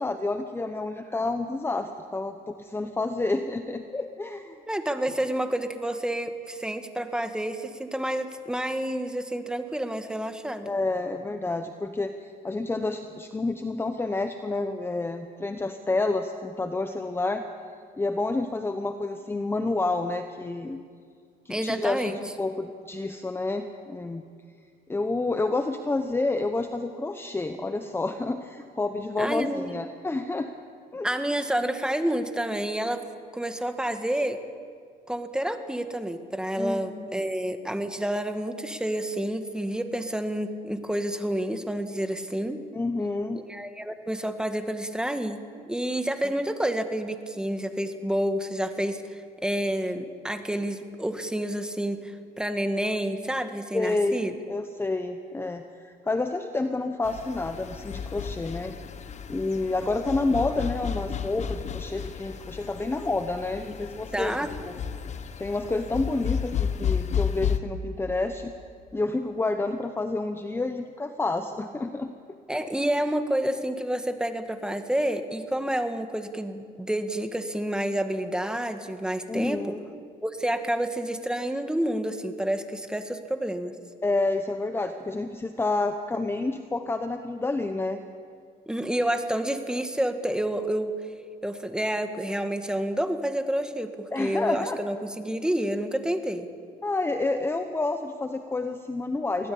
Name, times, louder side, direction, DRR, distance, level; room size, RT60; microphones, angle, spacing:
voice 1, 0.0-4.6 10.6-17.5 18.0-20.8 21.4-24.2 24.9-30.5 30.9-31.1 36.6-37.3 42.7-43.4 46.2-46.3 53.7-58.8 59.3-64.4 64.6-64.8 65.4-68.5 68.9-72.1 72.6-72.7 79.3-79.8 84.0-88.0 94.1-94.8 96.8-99.5, left 2 dB, 15° left, 7 dB, 1.0 m, -29 dB
voice 2, 4.7-10.7 21.5-22.2 29.2-29.8 31.0-33.0 33.3-34.4 35.1-42.6 43.3-45.4 45.7-54.4 64.1-64.5 72.5-79.8 80.2-83.7 88.7-90.9 91.4-96.5, right 1 dB, 5° right, 7 dB, 1.7 m, -29 dB
sound 1, 57.0-67.6, left 7 dB, 45° left, 1.2 m, -32 dB
23.5 x 17.0 x 8.6 m, 2.2 s
cardioid pair, 110°, 17 cm